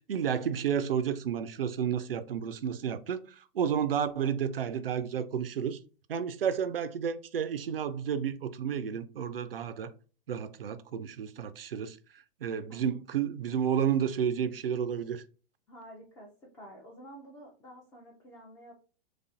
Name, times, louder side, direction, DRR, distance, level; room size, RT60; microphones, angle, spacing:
voice 1, 0.1-5.8 6.1-9.9 10.3-12.0 12.4-15.2, right 8 dB, 70° right, 0.5 m, -31 dB
voice 2, 12.7-13.0 15.7-18.7, right 1 dB, 10° left, 0.4 m, -50 dB
4.1 x 2.4 x 2.4 m
figure-of-eight pair, 105°, 30 cm